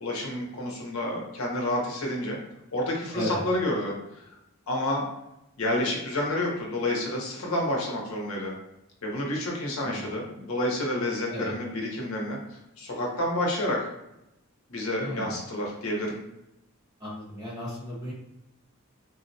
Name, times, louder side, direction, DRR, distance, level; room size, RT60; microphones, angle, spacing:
voice 1, 0.0-2.4 2.7-4.2 4.7-5.0 5.6-8.6 9.0-12.4 12.8-13.9 14.7-16.2, left 1 dB, 70° left, -2 dB, 0.8 m, -29 dB
voice 2, 15.0-15.4 17.0-18.1, equal, 20° right, -6 dB, 1.0 m, -34 dB
3.9 x 2.0 x 2.7 m, 0.88 s
head